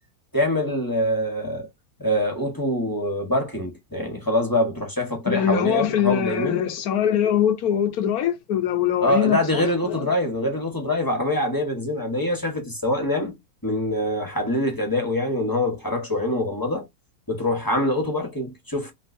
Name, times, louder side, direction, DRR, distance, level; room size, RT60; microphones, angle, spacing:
voice 1, 0.3-1.7 2.0-6.6 9.0-13.4 13.6-16.9 17.3-18.9, left 1 dB, 15° left, 0.9 m, -24 dB
voice 2, 5.3-10.0, left 9 dB, 65° left, 1.1 m, -23 dB
3.2 x 3.0 x 2.6 m
omnidirectional pair, 1.9 m